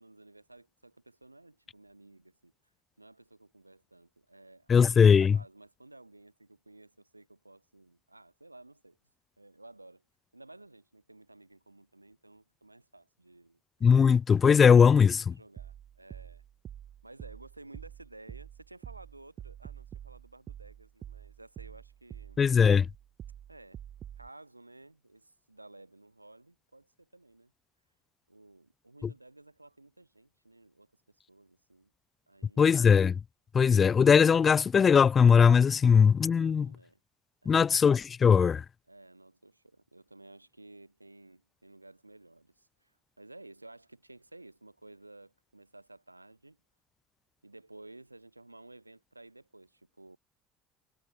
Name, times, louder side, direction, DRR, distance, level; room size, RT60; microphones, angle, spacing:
voice 1, 0.0-2.5 3.0-4.9 5.2-9.0 9.4-10.0 10.3-13.6 13.9-14.1 15.3-16.4 17.0-22.4 23.5-23.8 24.2-27.5 28.3-31.9 32.3-32.8 36.4-37.0 37.4-37.7 38.9-46.6 47.4-50.2, right 2 dB, 90° right, 5.8 m, -54 dB
voice 2, 4.7-5.4 13.8-15.3 22.4-22.9 32.6-33.2 33.5-36.7 37.5-38.6, left 6 dB, 30° left, 0.4 m, -20 dB
sound 1, 15.6-24.3, right 10 dB, 40° right, 2.5 m, -47 dB
figure-of-eight pair, 60°, 0 cm